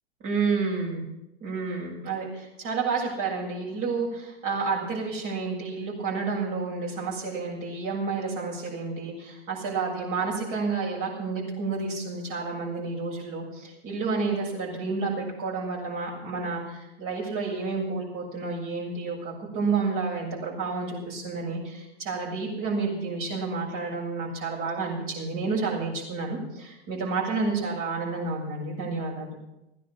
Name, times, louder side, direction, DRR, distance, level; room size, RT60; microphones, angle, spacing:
voice 1, 0.2-1.0 1.4-29.4, right 4 dB, 40° right, -2 dB, 7.2 m, -30 dB
16.0 x 10.0 x 7.6 m, 0.91 s
figure-of-eight pair, 100°, 33 cm